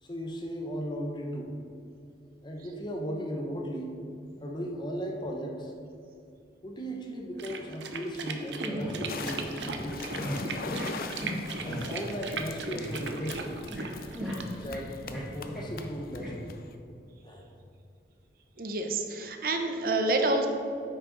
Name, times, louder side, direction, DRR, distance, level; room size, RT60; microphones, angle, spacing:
voice 1, 0.0-1.5 2.4-3.9 4.4-5.7 6.6-9.6 9.8-10.3 11.6-13.7 14.5-16.6 17.2-17.5, equal, 25° left, 1 dB, 0.8 m, -36 dB
sound 1, 7.4-14.7, right 4 dB, 85° right, 0.7 m, -38 dB
sound 2, 8.6-9.4 9.6-9.7 10.1-10.4 10.6-10.9 11.1-11.8 12.2-12.4 12.7-12.9 13.2-13.9 14.1-16.3, equal, ahead, 1.7 m, -37 dB
sound 3, 9.1-16.7, left 4 dB, 55° left, 0.5 m, -42 dB
voice 2, 18.6-20.5, right 2 dB, 55° right, 4 dB, 0.7 m, -28 dB
9.1 x 6.2 x 3.9 m, 2.5 s
head